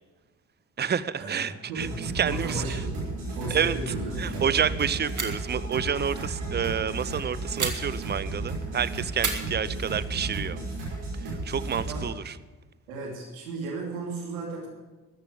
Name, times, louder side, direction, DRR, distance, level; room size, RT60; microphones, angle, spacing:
voice 1, 0.8-2.8 3.5-10.6 11.2-12.3, right 7 dB, 25° right, 16 dB, 0.7 m, -29 dB
voice 2, 1.7-4.6 9.6-9.7 11.9-12.0 12.9-14.7, right 2 dB, 90° right, -2 dB, 2.9 m, -35 dB
sound 1, 1.8-12.0, right 2 dB, 70° right, 5.4 m, -34 dB
sound 2, 3.8-4.2 4.5-4.6 5.1-5.6 7.6-8.4 9.2-10.3, right 5 dB, 45° right, 2.2 m, -35 dB
13.5 x 8.7 x 7.9 m, 1.3 s
hypercardioid pair, 40°, 41 cm